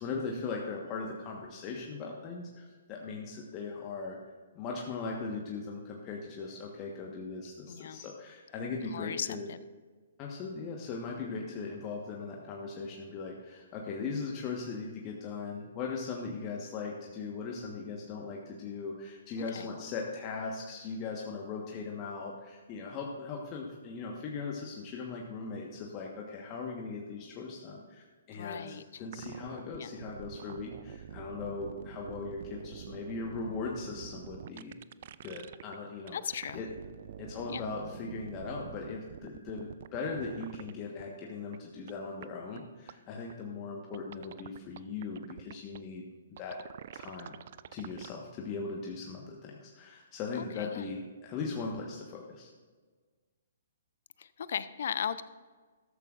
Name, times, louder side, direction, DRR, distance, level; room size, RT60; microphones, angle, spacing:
voice 1, 0.0-4.2 4.5-9.5 10.2-34.7 35.2-36.7 37.2-46.0 46.4-46.6 46.9-47.4 47.7-52.5, left 4 dB, 30° left, -1 dB, 1.4 m, -39 dB
voice 2, 7.7-8.1 8.8-9.6 19.4-19.7 28.3-29.0 29.8-29.9 36.1-36.7 37.5-37.6 50.4-50.9 54.2-55.2, left 8 dB, 60° left, 15 dB, 0.6 m, -37 dB
sound 1, 29.1-35.8 36.1-40.7 41.0-41.1 41.5-41.6 41.9-42.0 42.2-42.3 42.6-42.7 42.9-43.0 43.3-43.4 43.9-45.8 46.4-48.1, right 9 dB, 50° right, 0.4 m, -46 dB
14.0 x 13.0 x 2.6 m, 1.5 s
figure-of-eight pair, 125°, 0 cm